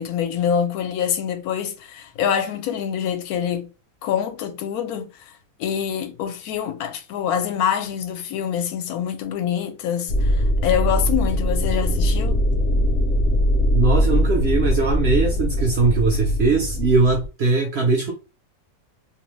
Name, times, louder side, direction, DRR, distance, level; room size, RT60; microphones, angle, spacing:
voice 1, 0.0-3.7 4.0-5.1 5.6-12.4, left 8 dB, 80° left, 1.1 m, -25 dB
sound 1, 10.1-17.3, equal, 65° left, 0.7 m, -21 dB
voice 2, 13.7-18.1, right 4 dB, 60° right, 0.7 m, -20 dB
2.6 x 2.0 x 3.1 m
omnidirectional pair, 1.6 m